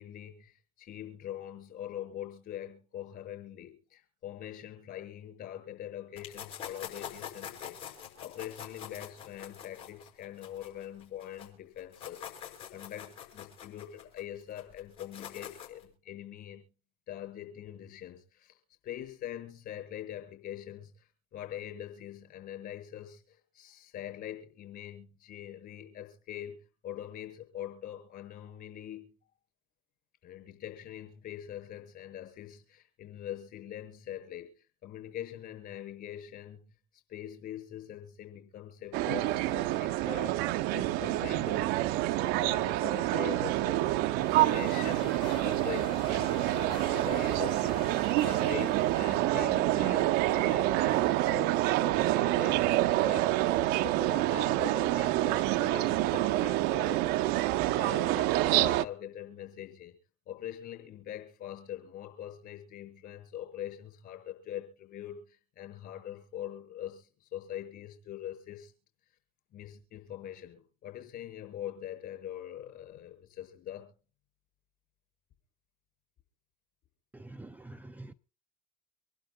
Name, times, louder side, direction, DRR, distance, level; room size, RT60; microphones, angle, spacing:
voice 1, 0.0-12.2 12.7-16.7 17.1-18.6 18.8-26.6 26.8-29.1 30.2-34.5 34.8-36.8 37.1-41.8 42.2-53.4 53.8-57.1 57.7-59.9 60.3-68.7 69.5-73.9, left 11 dB, 50° left, 6.8 m, -43 dB
sound 1, 6.2-11.5 11.8-15.8, left 9 dB, 65° left, 6.3 m, -45 dB
Busy Train Station, 38.9-58.8, right 16 dB, 55° right, 0.6 m, -27 dB
sound 2, 43.8-49.5, left 3 dB, 25° left, 1.4 m, -47 dB
voice 2, 77.1-78.1, right 2 dB, 10° right, 0.5 m, -46 dB
26.5 x 11.5 x 2.2 m
figure-of-eight pair, 70°, 21 cm